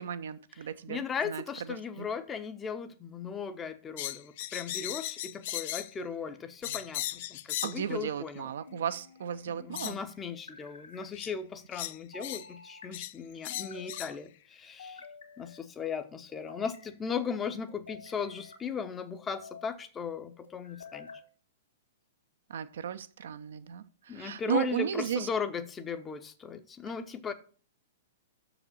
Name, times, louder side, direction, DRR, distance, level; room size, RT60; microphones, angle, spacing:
voice 1, 0.0-1.4 2.0-2.1 7.6-10.0 22.5-25.3, right 8 dB, 60° right, 0.5 m, -35 dB
voice 2, 0.9-8.5 9.5-15.0 15.4-21.1 24.1-27.3, left 6 dB, 15° left, 0.7 m, -37 dB
sound 1, 4.0-5.9 6.6-7.8 8.9-9.0 9.7-10.0 11.1-11.3 11.7-12.5 12.9-13.2 13.4-14.1, left 14 dB, 45° left, 0.3 m, -37 dB
sound 2, 6.6-7.3 8.7-9.4 10.3-11.0 12.1-12.9 13.5-14.2 14.8-15.6 16.3-16.9 17.7-18.6 19.1-19.7 20.4-21.2, left 4 dB, 75° left, 2.0 m, -50 dB
6.8 x 5.0 x 6.7 m
figure-of-eight pair, 105°, 0 cm